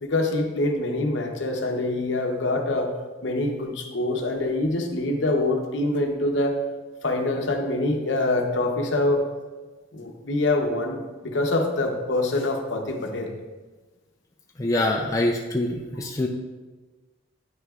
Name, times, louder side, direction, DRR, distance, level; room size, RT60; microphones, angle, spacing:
voice 1, 0.0-2.9 3.2-6.6 7.0-9.2 9.9-13.3, left 2 dB, 60° left, 3 dB, 0.8 m, -25 dB
voice 2, 14.6-16.3, left 1 dB, 15° left, -1 dB, 0.4 m, -24 dB
9.3 x 6.3 x 2.4 m, 1.3 s
head